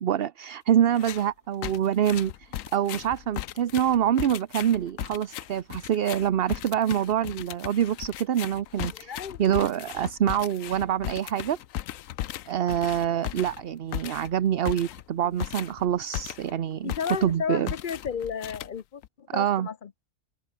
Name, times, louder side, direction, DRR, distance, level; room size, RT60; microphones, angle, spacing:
voice 1, 0.0-9.1 9.4-11.6 12.5-16.9 17.2-17.7 19.3-19.7, right 10 dB, 55° right, 0.8 m, -26 dB
sound 1, 0.9-1.3 1.6-16.6 16.9-17.4 17.7-19.1, left 12 dB, 85° left, 1.1 m, -37 dB
voice 2, 9.0-9.4 15.2-15.3 16.8-19.0 19.3-19.9, left 7 dB, 45° left, 0.8 m, -33 dB
omnidirectional pair, 1.4 m